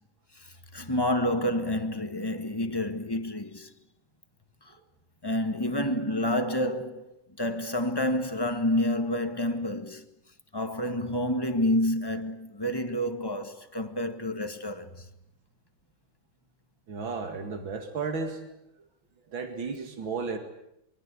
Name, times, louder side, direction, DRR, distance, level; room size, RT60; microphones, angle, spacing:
voice 1, 0.4-3.7 5.2-7.1 7.4-10.0 10.5-15.0, left 1 dB, 15° left, 1.6 m, -29 dB
voice 2, 16.9-18.5 19.3-20.4, right 4 dB, 80° right, 3.0 m, -33 dB
26.5 x 23.5 x 8.4 m
omnidirectional pair, 2.1 m